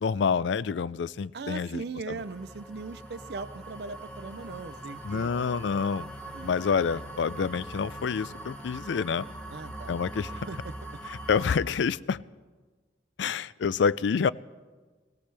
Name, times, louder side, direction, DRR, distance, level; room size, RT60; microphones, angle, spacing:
voice 1, 0.0-1.8 2.1-2.2 5.0-6.1 6.4-9.3 9.9-10.5 11.1-12.2 13.2-14.3, left 6 dB, 80° left, 19 dB, 0.4 m, -28 dB
voice 2, 1.3-5.3 6.3-6.5 9.5-9.9 10.5-10.7, right 4 dB, 65° right, 13 dB, 0.5 m, -39 dB
sound 1, 2.2-11.6, right 1 dB, 5° left, 0.9 m, -42 dB
23.0 x 17.5 x 3.4 m, 1.4 s
head